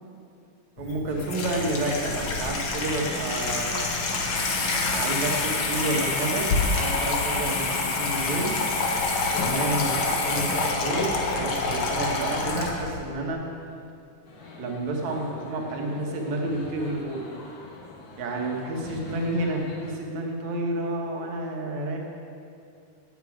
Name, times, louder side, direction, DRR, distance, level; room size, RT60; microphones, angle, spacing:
Water tap faucet / Sink (filling or washing), 0.8-13.0, left 3 dB, 55° left, 1.7 m, -27 dB
voice 1, 0.8-3.9 4.8-8.6 9.3-13.5 14.6-17.2 18.2-22.0, right 2 dB, 70° right, 0 dB, 2.9 m, -30 dB
sound 1, 14.2-20.0, left 2 dB, 75° left, 3.1 m, -44 dB
9.5 x 9.5 x 8.7 m, 2.5 s
omnidirectional pair, 3.4 m